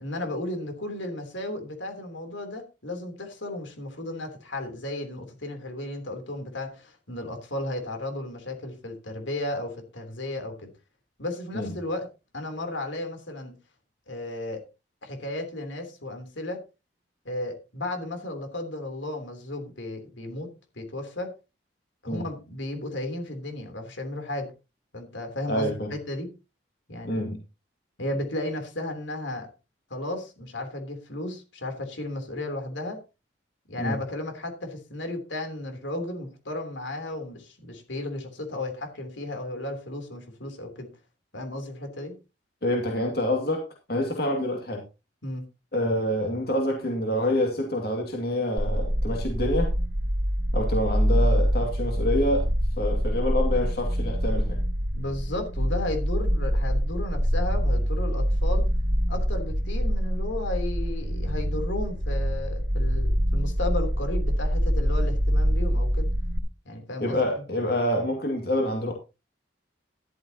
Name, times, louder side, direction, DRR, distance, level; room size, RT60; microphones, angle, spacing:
voice 1, 0.0-10.7 11.2-12.0 12.3-13.5 14.1-14.6 15.0-16.6 17.2-20.5 20.7-21.3 22.0-24.5 24.9-26.3 26.9-27.2 28.0-29.5 29.9-33.0 33.7-40.9 41.3-42.1 45.2-45.4 54.9-58.7 59.1-66.1 66.6-67.2, left 1 dB, 80° left, 5 dB, 3.4 m, -34 dB
voice 2, 25.5-25.9 27.1-27.4 33.8-34.0 42.6-44.8 45.7-49.7 50.5-52.5 52.8-54.6 67.0-68.9, left 1 dB, 55° left, 1 dB, 2.3 m, -27 dB
sound 1, 48.6-66.4, equal, 65° right, 2.4 m, -25 dB
14.0 x 11.5 x 2.9 m, 0.29 s
head